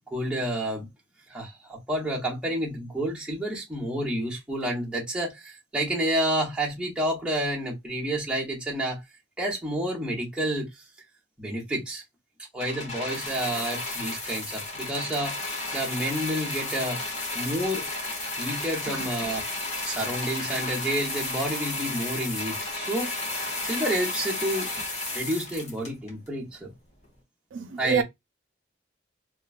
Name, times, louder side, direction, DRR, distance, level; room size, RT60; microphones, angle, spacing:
voice 1, 0.1-0.9 1.3-9.0 9.4-10.8 11.4-12.0 12.5-15.4 15.7-17.0 17.3-17.9 18.4-19.4 19.8-23.1 23.6-24.7 25.1-26.7 27.8-28.0, right 1 dB, 5° right, 0.9 m, -29 dB
sound 1, 12.6-26.3 27.0-27.1, left 2 dB, 35° left, 0.9 m, -33 dB
voice 2, 27.5-28.0, right 6 dB, 75° right, 0.3 m, -27 dB
3.0 x 2.1 x 2.3 m
head